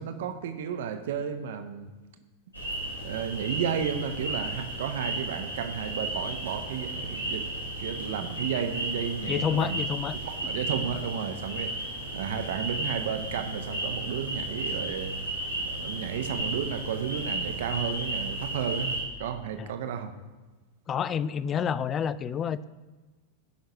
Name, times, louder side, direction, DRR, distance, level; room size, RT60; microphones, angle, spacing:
voice 1, 0.0-1.9 3.0-9.8 10.2-11.8 12.1-15.1 15.5-20.1, right 8 dB, 55° right, 8 dB, 0.8 m, -33 dB
sound 1, 2.5-19.0, right 1 dB, 85° left, 2.2 m, -34 dB
voice 2, 9.3-10.2 19.6-19.7 20.9-22.6, left 8 dB, 25° left, 16 dB, 0.4 m, -28 dB
15.5 x 5.7 x 2.9 m, 1.3 s
figure-of-eight pair, 90°, 0 cm